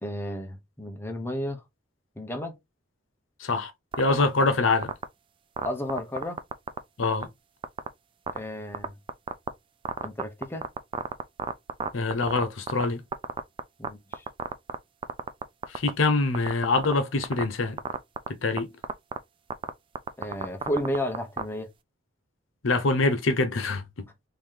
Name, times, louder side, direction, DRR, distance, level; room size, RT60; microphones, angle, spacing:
voice 1, 0.0-1.6 2.2-2.6 5.6-6.4 8.3-8.9 10.0-10.7 13.8-14.2 20.2-21.7, left 1 dB, 10° left, 0.7 m, -32 dB
voice 2, 3.4-3.7 4.0-4.9 7.0-7.3 11.9-13.0 15.7-17.8 18.4-18.7 22.6-24.1, left 3 dB, 90° left, 0.7 m, -24 dB
sound 1, 3.9-4.4 4.8-5.0 5.6-6.8 7.0-7.2 7.6-7.9 8.3-8.4 8.7-9.5 9.8-12.8 13.1-13.9 14.1-14.7 15.0-15.9 16.3-16.9 17.2-17.4 17.8-18.3 18.6-18.7 18.8-19.2 19.5-19.7 19.9-21.4, right 5 dB, 25° right, 0.3 m, -29 dB
3.9 x 2.7 x 3.2 m
head